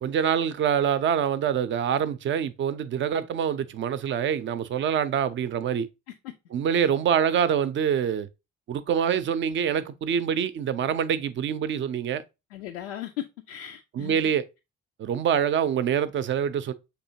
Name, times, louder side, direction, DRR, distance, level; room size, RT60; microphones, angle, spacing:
voice 1, 0.0-5.9 6.5-8.3 8.7-12.2 13.9-14.5 15.0-16.7, right 8 dB, 35° right, 0.5 m, -25 dB
voice 2, 12.5-14.3, left 12 dB, 80° left, 0.5 m, -38 dB
6.5 x 2.7 x 2.6 m
figure-of-eight pair, 50°, 34 cm